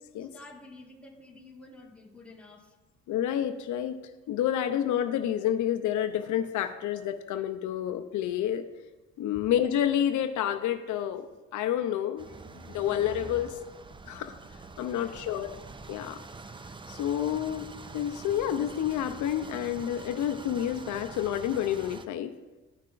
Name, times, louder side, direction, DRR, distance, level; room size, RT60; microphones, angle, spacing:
voice 1, 0.2-2.8 9.3-9.4 14.9-15.5, left 2 dB, 5° left, -1 dB, 1.4 m, -50 dB
voice 2, 3.1-4.0 4.3-8.7 9.2-11.3 11.5-12.3 12.5-13.6 14.1-14.4 14.8-15.5 15.9-16.2 16.9-22.3, left 10 dB, 75° left, 8 dB, 0.5 m, -29 dB
sound 1, 12.2-22.1, right 3 dB, 15° right, 0.4 m, -45 dB
13.0 x 5.6 x 2.5 m, 1.2 s
cardioid pair, 90°, 30 cm